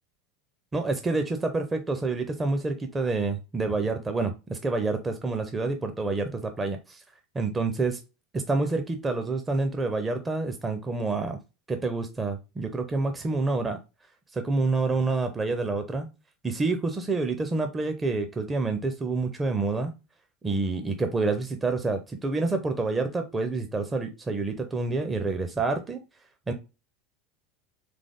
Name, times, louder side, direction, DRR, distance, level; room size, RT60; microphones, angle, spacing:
voice 1, 0.7-7.0 7.3-8.0 8.3-11.4 11.7-13.8 14.3-16.1 16.4-19.9 20.4-26.0 26.5-26.6, right 3 dB, 20° right, 6 dB, 0.6 m, -28 dB
3.6 x 3.4 x 3.7 m, 0.29 s
figure-of-eight pair, 75°, 0 cm